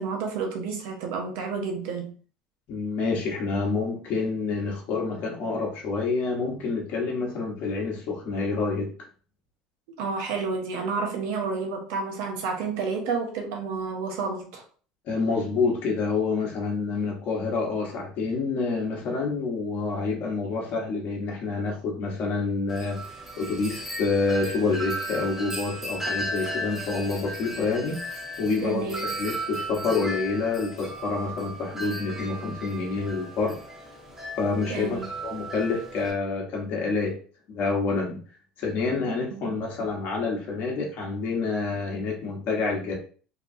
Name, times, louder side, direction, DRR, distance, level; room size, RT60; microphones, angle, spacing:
voice 1, 0.0-2.1 9.9-14.6 28.6-29.1 34.7-35.1 39.3-39.6, right 4 dB, 70° right, 0.8 m, -30 dB
voice 2, 2.7-8.9 15.1-23.0 23.4-28.0 28.4-28.9 29.2-33.6 34.4-37.2 37.5-38.2 38.6-42.9, left 4 dB, 55° left, 1.1 m, -27 dB
Wind chime, 22.7-36.1, right 1 dB, 10° right, 1.0 m, -36 dB
2.9 x 2.3 x 2.6 m
hypercardioid pair, 80°, 3 cm